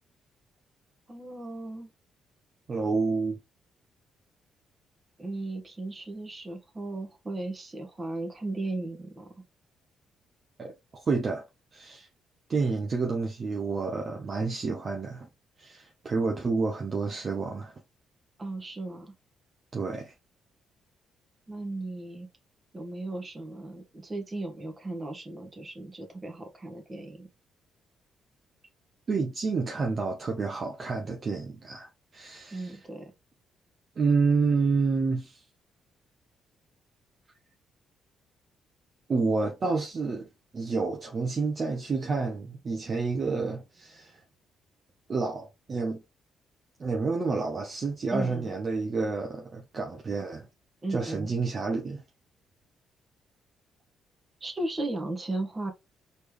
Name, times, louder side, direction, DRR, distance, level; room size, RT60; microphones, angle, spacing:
voice 1, 1.1-1.9 5.2-9.3 18.4-19.1 21.5-22.3 22.7-27.3 32.5-33.1 48.1-48.5 50.8-51.3 54.4-55.7, right 2 dB, 25° right, 1.6 m, -36 dB
voice 2, 2.7-3.4 10.6-11.4 11.7-12.1 12.5-15.3 15.6-17.7 19.7-20.1 29.1-32.8 34.0-35.4 39.1-40.3 40.5-44.2 45.1-46.0 46.8-50.5 50.9-52.0, right 4 dB, 40° right, 1.0 m, -29 dB
4.2 x 3.5 x 3.2 m
cardioid pair, 90°, 0 cm